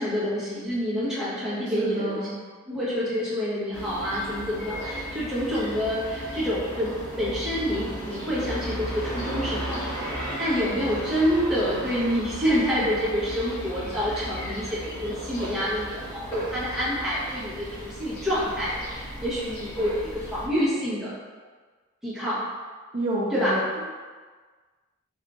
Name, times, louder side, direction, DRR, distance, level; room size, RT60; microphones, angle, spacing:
voice 1, 0.0-2.3 2.7-6.9 7.2-21.2 22.0-22.4 23.3-23.5, equal, ahead, -10 dB, 1.1 m, -27 dB
voice 2, 1.7-2.3 22.9-23.8, right 1 dB, 35° right, -7 dB, 0.6 m, -29 dB
sound 1, 3.7-20.5, right 1 dB, 25° left, 1.2 m, -35 dB
3.8 x 2.7 x 3.6 m, 1.4 s
head